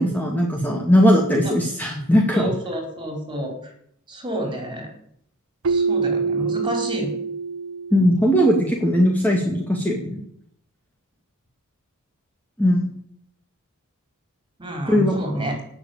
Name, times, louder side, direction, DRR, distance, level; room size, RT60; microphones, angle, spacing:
voice 1, 0.0-2.5 7.9-10.3 12.6-12.9 14.9-15.2, equal, 10° left, 0 dB, 2.1 m, -19 dB
voice 2, 2.3-3.7 4.1-4.9 5.7-7.1 14.6-15.6, right 1 dB, 20° right, 3 dB, 4.9 m, -29 dB
Keyboard (musical), 5.6-8.4, right 4 dB, 65° right, 0.7 m, -25 dB
18.0 x 7.1 x 9.0 m, 0.69 s
head